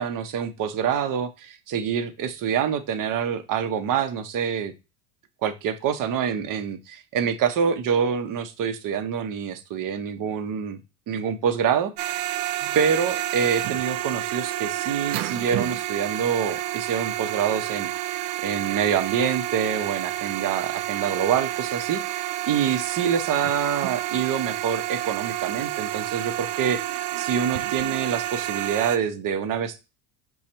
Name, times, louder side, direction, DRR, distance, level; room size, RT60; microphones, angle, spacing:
voice 1, 0.0-4.7 5.4-10.8 11.1-11.9 12.7-17.9 18.4-26.8 27.2-29.8, right 7 dB, 45° right, 9 dB, 0.8 m, -26 dB
sound 1, 12.0-29.0, right 14 dB, 75° right, 0.5 m, -29 dB
5.0 x 2.3 x 4.2 m, 0.28 s
supercardioid pair, 90°, 47 cm